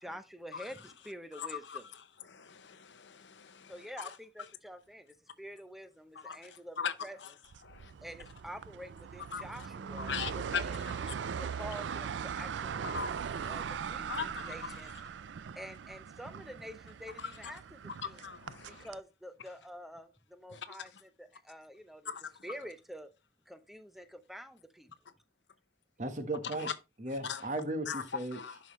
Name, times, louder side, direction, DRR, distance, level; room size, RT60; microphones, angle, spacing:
voice 1, 0.0-1.9 3.7-7.2 8.0-11.0 11.4-12.9 13.4-14.9 15.6-18.2 18.7-22.1 22.4-23.1 23.5-24.9, equal, ahead, 0.6 m, -48 dB
voice 2, 1.3-1.8 2.2-3.7 4.0-4.1 6.2-6.9 7.2-7.3 7.6-7.9 9.3-9.4 10.0-11.4 12.8-13.6 14.1-14.7 18.0-18.8 20.5-20.8 22.1-22.3 26.6-26.7 27.2-27.4 27.9-28.0 28.3-28.6, left 7 dB, 85° left, 0.8 m, -40 dB
sound 1, 7.5-19.0, right 7 dB, 85° right, 0.4 m, -40 dB
voice 3, 26.0-26.7 27.0-28.4, right 2 dB, 40° right, 1.2 m, -36 dB
11.0 x 5.3 x 3.1 m
head